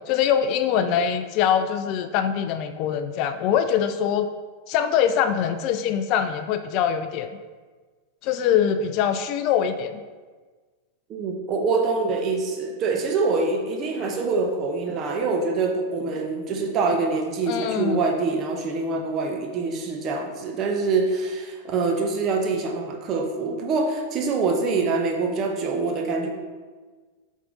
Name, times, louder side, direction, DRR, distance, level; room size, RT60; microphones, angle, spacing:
voice 1, 0.1-4.3 4.7-7.3 8.2-10.0 17.5-18.0, left 8 dB, 40° left, 10 dB, 0.3 m, -23 dB
voice 2, 11.1-26.3, right 4 dB, 30° right, 2 dB, 0.9 m, -25 dB
7.7 x 3.6 x 3.9 m, 1.4 s
figure-of-eight pair, 90°, 0 cm